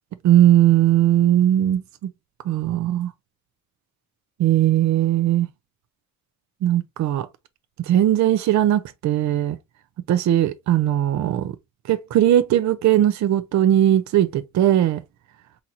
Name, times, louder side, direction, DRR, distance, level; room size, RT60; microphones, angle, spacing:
voice 1, 0.2-1.8 2.4-3.1 4.4-5.5 6.6-7.3 7.8-9.6 10.1-11.5 11.9-15.0, right 12 dB, 55° right, 0.6 m, -19 dB
3.9 x 2.9 x 2.8 m
cardioid pair, 150°, 34 cm